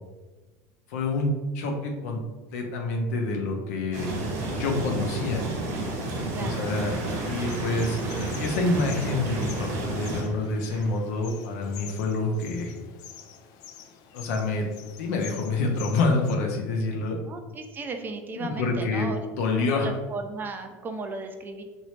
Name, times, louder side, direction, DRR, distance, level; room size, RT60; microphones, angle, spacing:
voice 1, 0.9-2.2 2.5-4.1 4.5-5.5 6.4-6.9 7.2-8.0 8.4-12.7 14.1-14.6 15.0-17.2 18.4-19.1 19.4-19.9, left 3 dB, 85° left, 1 dB, 0.7 m, -27 dB
sound 1, 3.9-10.2, right 2 dB, 75° right, 1.1 m, -31 dB
sound 2, 5.8-11.0, right 2 dB, 50° right, 0.9 m, -45 dB
voice 2, 6.3-6.6 17.3-21.6, right 3 dB, 25° right, 5 dB, 0.4 m, -36 dB
sound 3, 7.5-16.4, left 8 dB, 55° left, 0.4 m, -47 dB
3.1 x 2.6 x 3.0 m, 1.2 s
supercardioid pair, 120°, 8 cm